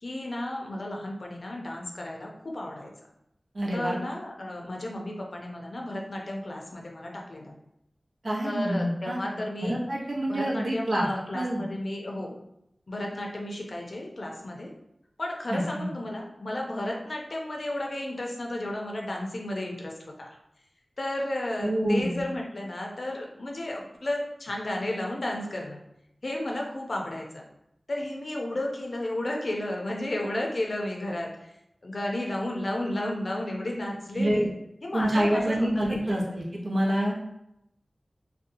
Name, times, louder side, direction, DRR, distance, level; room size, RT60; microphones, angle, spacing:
voice 1, 0.0-2.9 3.7-7.5 8.4-9.8 10.3-12.4 12.9-14.7 15.2-20.4 21.0-25.8 26.2-27.4 27.9-34.5 34.8-36.2, left 1 dB, 65° left, 0 dB, 0.5 m, -33 dB
voice 2, 3.5-4.0 8.2-11.0 11.3-11.6 15.5-15.9 21.6-22.2 34.1-34.5 34.9-37.1, right 1 dB, 70° right, -3 dB, 0.7 m, -27 dB
2.8 x 2.2 x 2.6 m, 0.82 s
wide cardioid pair, 50°, 0 cm